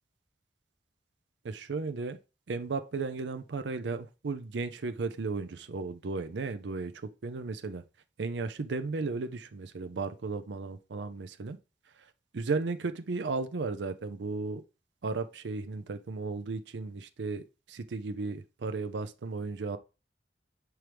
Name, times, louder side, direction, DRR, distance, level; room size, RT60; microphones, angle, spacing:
voice 1, 1.4-2.2 2.5-6.9 7.2-7.8 8.2-11.6 12.3-14.6 15.0-19.8, right 3 dB, 85° right, 0.5 m, -35 dB
6.1 x 4.6 x 3.3 m
head